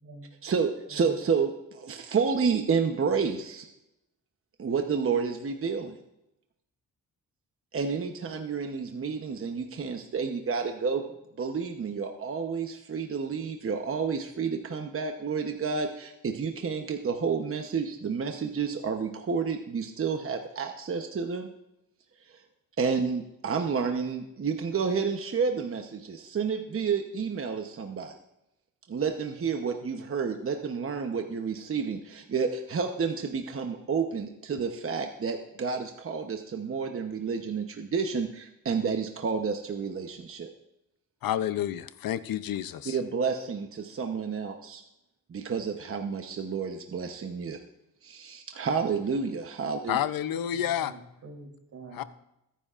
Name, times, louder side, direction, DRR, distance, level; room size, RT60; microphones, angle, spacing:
voice 1, 0.4-3.7 4.6-6.0 7.7-11.0 11.4-21.5 22.3-22.4 22.8-28.1 28.9-40.5 42.9-44.8 45.3-47.6 48.0-50.0, right 5 dB, 40° right, 4 dB, 1.0 m, -30 dB
voice 2, 41.2-43.0 49.9-50.9 51.9-52.0, left 11 dB, 90° left, 14 dB, 0.7 m, -29 dB
voice 3, 50.5-52.1, right 2 dB, 70° right, 2 dB, 3.5 m, -46 dB
22.0 x 10.0 x 2.5 m, 0.88 s
cardioid pair, 110°, 33 cm